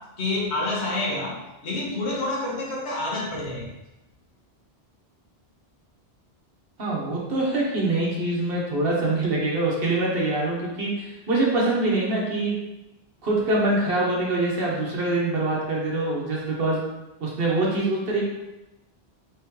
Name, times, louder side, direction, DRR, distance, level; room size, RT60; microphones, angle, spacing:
voice 1, 0.2-1.4 1.6-3.7, left 2 dB, 90° left, -3 dB, 1.3 m, -28 dB
voice 2, 6.8-12.5 13.2-16.8 17.2-18.2, right 2 dB, 65° right, -3 dB, 1.1 m, -24 dB
3.6 x 3.5 x 3.0 m, 0.99 s
omnidirectional pair, 1.1 m